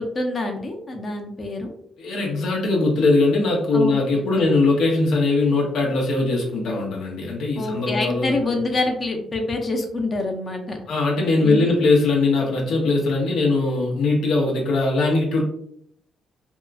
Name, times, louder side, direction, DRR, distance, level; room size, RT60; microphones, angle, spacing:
voice 1, 0.0-1.7 3.7-4.0 4.4-4.5 7.6-10.9 11.4-11.7, left 2 dB, 35° left, 3 dB, 0.6 m, -26 dB
voice 2, 2.0-8.5 10.9-15.4, left 3 dB, 80° left, -1 dB, 0.7 m, -20 dB
2.8 x 2.4 x 2.3 m, 0.70 s
cardioid pair, 90°, 0 cm